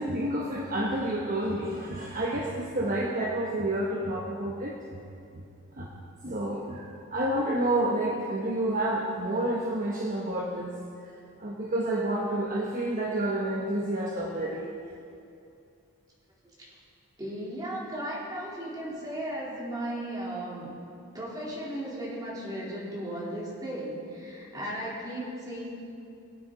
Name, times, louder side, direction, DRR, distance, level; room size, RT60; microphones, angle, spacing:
voice 1, 0.0-5.0 5.8-5.9 6.2-10.8 11.4-14.7, right 1 dB, 40° right, -2 dB, 1.0 m, -29 dB
voice 2, 17.2-20.7 21.1-25.6, right 1 dB, 15° right, -7 dB, 3.4 m, -36 dB
22.5 x 8.7 x 3.9 m, 2.6 s
head